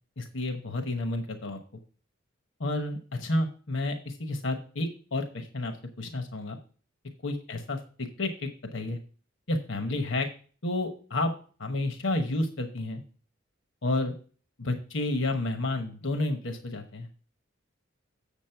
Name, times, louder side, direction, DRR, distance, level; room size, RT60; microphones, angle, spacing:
voice 1, 0.2-1.6 2.6-6.6 7.2-9.0 9.5-10.3 10.6-11.3 11.6-13.0 13.8-14.1 14.6-17.1, left 2 dB, 70° left, 6 dB, 1.1 m, -30 dB
7.4 x 7.3 x 4.5 m, 0.39 s
head